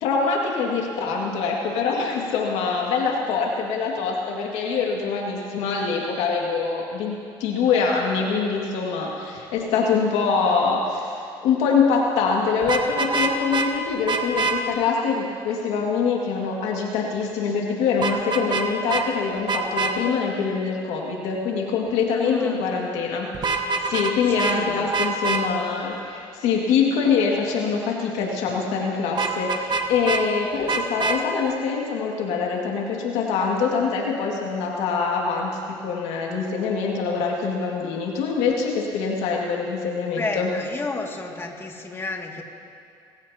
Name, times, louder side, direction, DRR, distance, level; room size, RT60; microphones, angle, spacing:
voice 1, 0.0-11.1 11.4-40.5, left 5 dB, 80° left, -1 dB, 2.2 m, -24 dB
Vehicle horn car horn honking, 12.6-13.7 14.1-14.6 18.0-18.6 18.9-19.0 19.5-19.9 23.3-24.1 24.4-24.6 24.9-25.4 29.2-30.2 30.7-31.2, right 4 dB, 45° right, 1.4 m, -24 dB
voice 2, 22.1-22.6 24.2-24.9 37.8-37.9 40.2-42.4, left 3 dB, 25° left, 0 dB, 2.3 m, -32 dB
29.5 x 15.5 x 2.9 m, 2.4 s
supercardioid pair, 85°, 11 cm